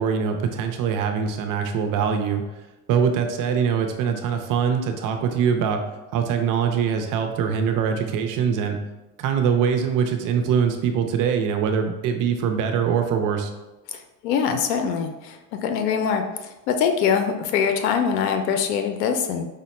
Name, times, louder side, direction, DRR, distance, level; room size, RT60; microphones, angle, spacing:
voice 1, 0.0-2.4 2.9-5.8 6.1-8.8 9.2-13.5, right 7 dB, 45° right, 5 dB, 0.5 m, -23 dB
voice 2, 14.2-16.2 16.7-19.5, left 7 dB, 90° left, 6 dB, 0.6 m, -23 dB
4.9 x 2.1 x 4.2 m, 1.1 s
supercardioid pair, 110°, 48 cm